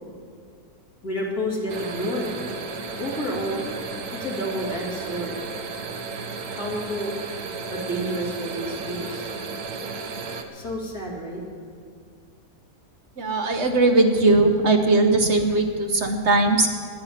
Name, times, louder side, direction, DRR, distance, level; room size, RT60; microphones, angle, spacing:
voice 1, 1.0-2.3 3.0-3.6 4.1-5.4 6.5-7.2 7.7-9.3 10.5-11.4, equal, 70° left, -2 dB, 3.0 m, -29 dB
sound 1, 1.7-10.4, right 4 dB, 75° right, 1.5 m, -34 dB
voice 2, 13.2-16.7, right 2 dB, 50° right, 5 dB, 1.0 m, -19 dB
10.5 x 9.7 x 10.0 m, 2.3 s
omnidirectional pair, 1.6 m